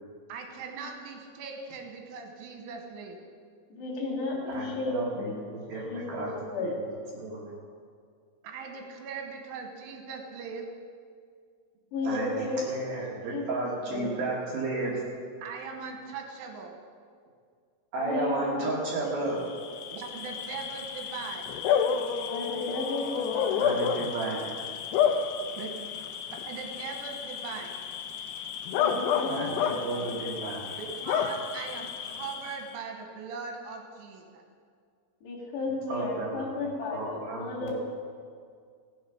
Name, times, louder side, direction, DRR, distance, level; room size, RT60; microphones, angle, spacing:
voice 1, 0.3-3.2 8.4-10.7 15.4-16.7 19.9-21.5 25.6-25.9 26.3-27.7 30.8-34.4, right 5 dB, 80° right, 3 dB, 3.5 m, -40 dB
voice 2, 3.7-5.4 5.8-6.8 11.9-14.1 18.0-19.5 22.3-23.6 28.7-30.1 35.2-37.8, left 2 dB, 60° left, -5 dB, 4.0 m, -34 dB
voice 3, 4.5-6.3 6.6-6.7 7.1-7.4 12.0-15.0 17.9-19.4 23.6-24.6 29.3-30.7 35.9-36.5 36.9-37.8, right 2 dB, 65° right, -4 dB, 2.6 m, -33 dB
Bark / Cricket, 19.4-32.7, left 7 dB, 85° left, 2.3 m, -31 dB
16.5 x 8.0 x 5.6 m, 2.1 s
omnidirectional pair, 5.7 m